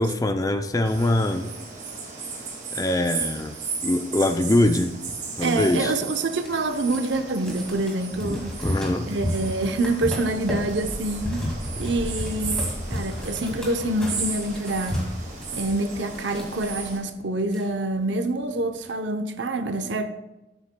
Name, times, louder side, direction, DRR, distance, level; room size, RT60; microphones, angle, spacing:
voice 1, 0.0-1.5 2.7-3.6 3.8-5.0 5.4-5.9 8.2-9.1, left 1 dB, 20° left, 0.5 m, -23 dB
sound 1, 0.8-17.0, right 4 dB, 40° right, 2.0 m, -35 dB
voice 2, 5.4-8.6 9.1-11.5 11.8-12.6 12.9-15.1 15.5-20.1, right 2 dB, 80° right, 0.7 m, -26 dB
sound 2, 6.4-16.7 17.2-17.3 17.4-18.1 18.6-18.9, left 1 dB, 5° left, 2.1 m, -33 dB
13.0 x 8.0 x 2.2 m
head